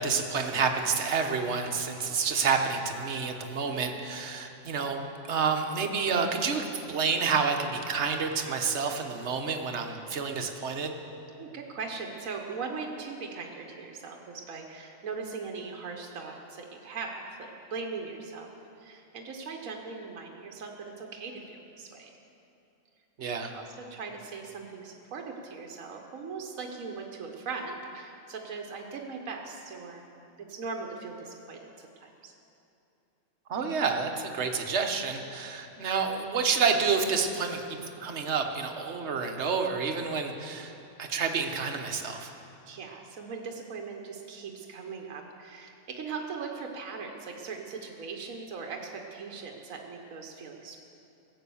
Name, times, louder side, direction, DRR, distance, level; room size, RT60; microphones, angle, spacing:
voice 1, 0.0-5.0 5.3-10.9 23.2-23.5 33.5-40.7 41.0-42.3, right 5 dB, 55° right, 4 dB, 1.3 m, -29 dB
voice 2, 11.4-22.1 23.5-30.1 30.5-32.3 42.6-50.8, right 4 dB, 80° right, 1 dB, 1.4 m, -40 dB
16.5 x 8.4 x 7.0 m, 2.8 s
omnidirectional pair, 1.4 m